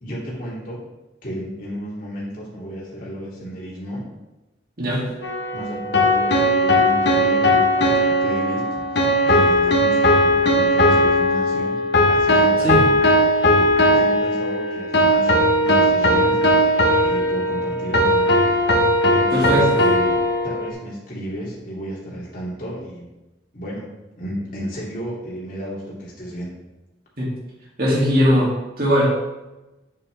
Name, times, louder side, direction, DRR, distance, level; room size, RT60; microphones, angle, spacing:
voice 1, 0.0-0.8 1.2-4.1 5.5-11.8 12.1-13.0 13.3-18.7 19.1-23.1 23.5-23.9 24.2-26.5, equal, 50° left, -5 dB, 2.7 m, -33 dB
voice 2, 4.8-5.1 12.6-12.8 19.3-19.8 27.2-27.3 27.8-28.5 28.8-29.1, equal, 55° right, -5 dB, 2.6 m, -19 dB
sound 1, 5.2-20.7, equal, 70° left, 1.2 m, -18 dB
8.2 x 7.0 x 3.4 m, 1.0 s
head